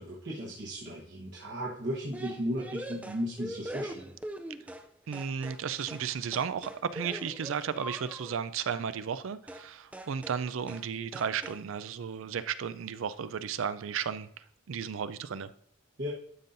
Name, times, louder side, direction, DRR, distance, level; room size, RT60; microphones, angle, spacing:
voice 1, 0.0-4.1 16.0-16.1, equal, 60° right, -4 dB, 1.2 m, -35 dB
sound 1, 2.1-4.9 5.1-5.6 5.9-6.1 6.3-8.4 9.5-9.7 9.9-10.4 10.7-10.9 11.1-11.6, right 1 dB, 5° right, 0.4 m, -42 dB
voice 2, 5.1-14.3 14.7-15.5, right 7 dB, 85° right, 14 dB, 0.4 m, -34 dB
11.5 x 5.4 x 2.6 m, 0.65 s
head